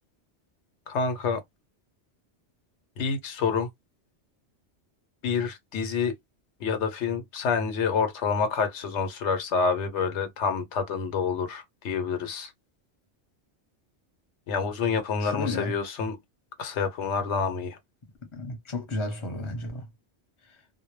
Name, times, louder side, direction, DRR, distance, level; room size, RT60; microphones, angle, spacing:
voice 1, 0.9-1.4 3.0-3.7 5.2-6.1 6.6-12.5 14.5-16.2 16.6-17.8, left 5 dB, 80° left, 0.9 m, -28 dB
voice 2, 15.2-15.7 18.3-19.9, left 2 dB, 30° left, 0.8 m, -32 dB
2.1 x 2.0 x 3.0 m
omnidirectional pair, 1.2 m